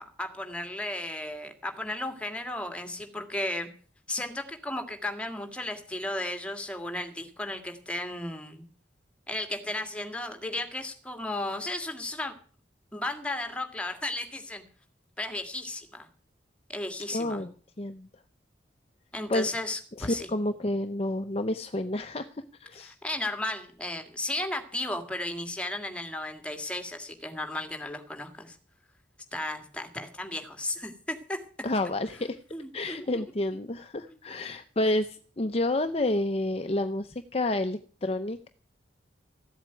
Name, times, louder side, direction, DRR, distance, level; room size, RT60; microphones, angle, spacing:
voice 1, 0.0-3.7 4.1-8.6 9.3-12.3 12.9-14.6 15.2-16.1 16.7-17.4 19.1-20.3 22.8-28.6 29.3-31.4 32.5-33.0, left 1 dB, 5° left, 5 dB, 2.0 m, -34 dB
voice 2, 17.1-18.1 19.3-19.5 20.0-22.3 22.6-23.0 31.6-32.4 32.7-38.5, left 1 dB, 35° left, 8 dB, 0.7 m, -29 dB
14.5 x 8.0 x 9.2 m, 0.43 s
head